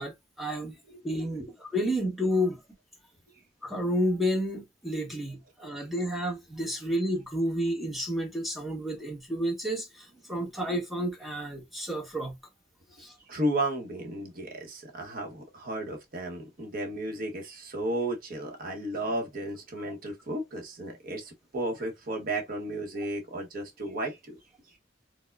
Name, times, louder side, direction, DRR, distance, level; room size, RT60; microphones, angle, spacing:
voice 1, 0.0-0.7 1.0-2.6 3.6-12.4 13.0-13.1, equal, ahead, 0.8 m, -30 dB
voice 2, 13.3-24.4, right 1 dB, 50° right, 0.8 m, -33 dB
4.4 x 2.1 x 2.2 m
head